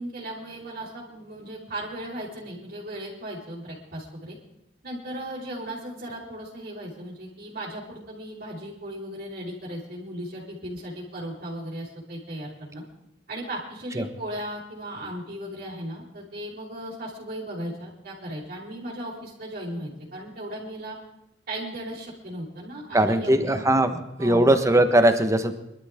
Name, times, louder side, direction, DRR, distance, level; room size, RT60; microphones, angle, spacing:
voice 1, 0.0-4.4 4.8-12.8 13.3-21.0 21.5-23.6 23.9-24.5, right 1 dB, 50° right, -8 dB, 4.3 m, -36 dB
voice 2, 22.9-23.9 24.2-25.5, right 1 dB, 15° right, 8 dB, 1.2 m, -19 dB
25.0 x 13.0 x 3.6 m, 0.87 s
head